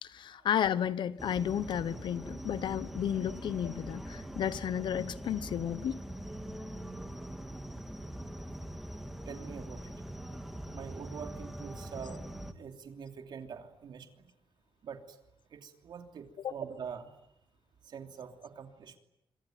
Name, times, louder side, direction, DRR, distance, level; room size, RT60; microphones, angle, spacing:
voice 1, 0.0-6.0 16.4-16.5, left 9 dB, 60° left, 1.0 m, -32 dB
sound 1, 1.2-12.5, right 1 dB, 5° right, 1.8 m, -43 dB
voice 2, 9.3-9.9 10.7-12.2 12.6-14.3 14.8-15.2 15.5-17.1 17.8-19.0, right 7 dB, 55° right, 3.0 m, -44 dB
26.0 x 24.0 x 9.3 m
wide cardioid pair, 170°, 9 cm